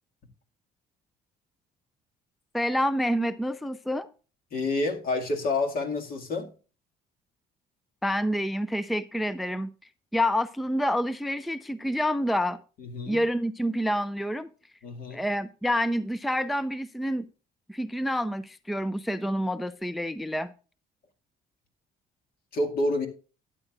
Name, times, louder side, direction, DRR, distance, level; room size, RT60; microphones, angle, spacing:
voice 1, 2.5-4.1 8.0-9.7 10.1-12.6 13.1-14.5 15.1-17.3 17.7-20.5, equal, ahead, 0.4 m, -28 dB
voice 2, 4.5-6.5 12.8-13.2 14.8-15.2 22.5-23.1, left 2 dB, 60° left, 2.1 m, -28 dB
12.5 x 9.0 x 2.4 m
cardioid pair, 110°, 17 cm